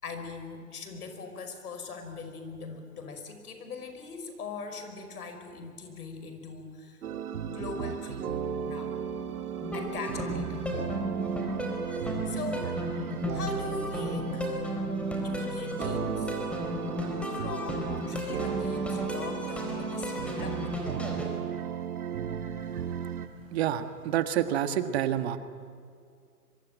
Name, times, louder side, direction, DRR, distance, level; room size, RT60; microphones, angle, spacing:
voice 1, 0.0-7.0 7.4-8.3 8.6-8.9 9.7-10.7 12.3-14.5 15.2-16.3 17.2-20.8, left 4 dB, 75° left, 7 dB, 5.3 m, -41 dB
sound 1, 7.0-23.3, right 7 dB, 70° right, 2.1 m, -35 dB
sound 2, 9.6-21.3, equal, 5° left, 3.9 m, -34 dB
voice 2, 23.5-25.4, right 11 dB, 45° right, 10 dB, 1.5 m, -28 dB
24.5 x 23.5 x 9.2 m, 2.2 s
hypercardioid pair, 140°, 46 cm